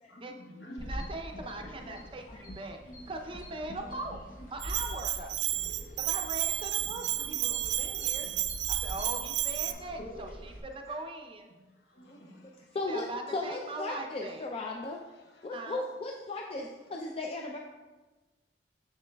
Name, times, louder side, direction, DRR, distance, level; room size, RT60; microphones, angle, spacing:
voice 1, 0.1-1.1 1.6-2.1 2.8-3.1 3.7-4.0 4.4-4.5 5.5-5.7 6.8-7.5 8.0-8.4 9.0-9.1 9.7-10.2 10.9-11.0 11.9-12.5 16.9-17.1, equal, 70° left, 0 dB, 1.1 m, -49 dB
sound 1, 0.8-10.6, equal, 55° left, 0.8 m, -44 dB
voice 2, 0.8-2.8 3.1-4.2 4.5-5.4 6.1-8.3 8.7-11.5 12.9-14.5 15.5-15.9, right 2 dB, 30° right, 4 dB, 0.5 m, -40 dB
Bell, 4.6-9.7, right 14 dB, 85° right, 0.3 m, -32 dB
voice 3, 12.4-15.0 15.4-17.6, left 2 dB, 35° left, 1 dB, 0.4 m, -36 dB
7.0 x 6.8 x 2.2 m, 1.2 s
head